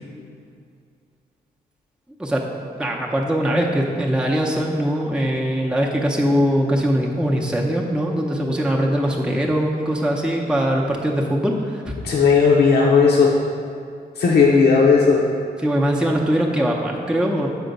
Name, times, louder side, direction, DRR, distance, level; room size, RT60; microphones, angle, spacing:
voice 1, 2.8-12.0 15.6-17.5, equal, 5° right, -1 dB, 0.6 m, -21 dB
voice 2, 12.0-13.3 14.2-15.2, left 5 dB, 85° left, -2 dB, 0.6 m, -15 dB
6.9 x 4.5 x 5.2 m, 2.3 s
wide cardioid pair, 105°, 17 cm